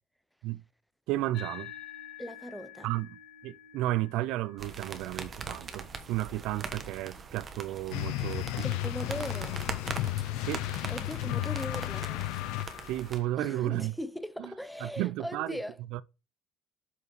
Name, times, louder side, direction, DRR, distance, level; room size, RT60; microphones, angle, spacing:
voice 1, 1.1-1.7 2.8-8.9 10.4-10.7 12.9-13.9 14.4-14.5 14.8-15.6 15.9-16.0, right 15 dB, 70° right, 0.4 m, -33 dB
sound 1, 1.3-10.1, left 10 dB, 45° left, 2.3 m, -51 dB
voice 2, 2.2-2.9 8.6-9.7 10.9-12.3 13.4-15.8, equal, ahead, 0.6 m, -39 dB
sound 2, 4.6-13.2, right 5 dB, 30° right, 1.1 m, -42 dB
sound 3, 7.9-13.1, left 16 dB, 80° left, 0.5 m, -33 dB
8.1 x 4.9 x 4.7 m
cardioid pair, 150°, 0 cm